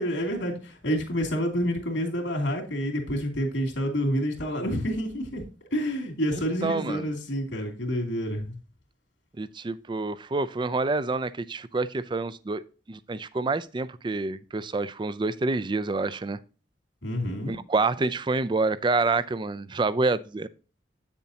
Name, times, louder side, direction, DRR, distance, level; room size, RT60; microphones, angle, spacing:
voice 1, 0.0-5.4 5.7-8.6 17.0-17.6, equal, 90° left, 2.7 m, -28 dB
voice 2, 6.3-7.0 9.4-12.6 12.9-16.4 17.5-20.5, right 3 dB, 25° right, 0.4 m, -27 dB
8.7 x 7.0 x 2.8 m
head